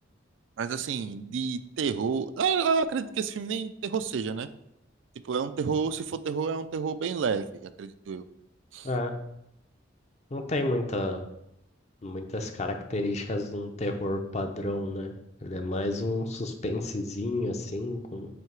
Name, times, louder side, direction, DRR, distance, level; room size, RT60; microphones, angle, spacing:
voice 1, 0.6-4.5 5.2-8.2 8.7-8.9, right 5 dB, 80° right, 12 dB, 0.4 m, -29 dB
voice 2, 10.3-11.2 12.0-15.1 15.4-18.3, left 2 dB, 35° left, 5 dB, 0.6 m, -31 dB
7.7 x 2.8 x 4.6 m, 0.80 s
head